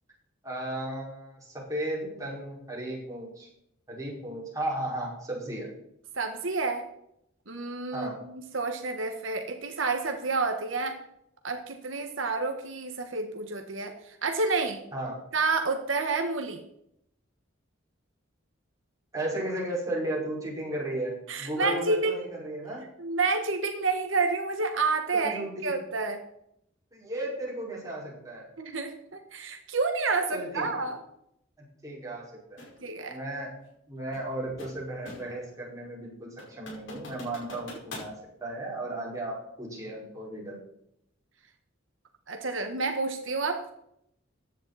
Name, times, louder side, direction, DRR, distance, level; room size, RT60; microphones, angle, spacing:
voice 1, 0.4-3.5 3.9-5.7 7.9-8.2 14.9-15.2 19.1-22.9 25.1-25.7 26.9-28.5 30.3-30.9 31.8-33.5 33.9-38.1 38.4-40.6, right 1 dB, 15° right, -5 dB, 5.3 m, -35 dB
voice 2, 6.2-6.8 7.5-11.0 11.4-14.8 15.3-16.6 21.3-22.2 23.0-26.2 28.6-31.0 32.8-33.2 42.3-43.7, right 3 dB, 80° right, 5 dB, 1.6 m, -29 dB
sound 1, 32.6-32.8 34.1-35.4 35.8-35.9 36.4-38.2, left 2 dB, 65° left, 5.2 m, -44 dB
15.0 x 10.5 x 4.3 m, 0.75 s
head